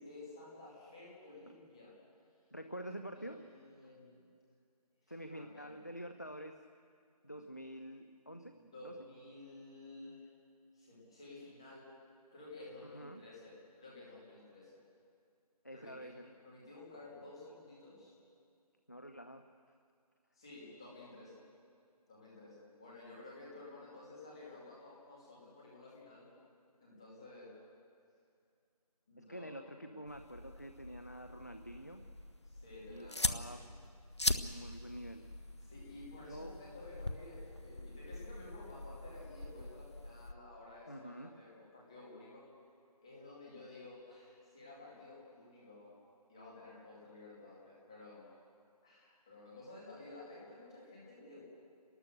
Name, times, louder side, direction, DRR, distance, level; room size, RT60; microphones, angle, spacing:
voice 1, 0.0-1.9 3.1-4.3 5.3-5.8 8.5-10.2 10.7-11.8 12.3-14.7 15.7-18.1 20.3-21.4 22.1-26.3 26.8-27.5 29.1-30.0 32.4-33.7 35.6-42.5 43.0-46.0 46.3-48.3 48.8-51.4, left 2 dB, 10° left, -6 dB, 2.3 m, -53 dB
voice 2, 2.5-3.4 5.1-6.6 7.2-8.9 12.8-13.2 15.6-16.3 18.9-19.4 29.2-32.0 32.9-33.6 34.3-35.3 36.3-36.5 40.9-41.3, equal, 25° left, 7 dB, 0.6 m, -47 dB
sound 1, 30.1-40.3, left 2 dB, 45° left, 0.9 m, -42 dB
27.0 x 19.0 x 6.6 m, 2.3 s
figure-of-eight pair, 175°, 20 cm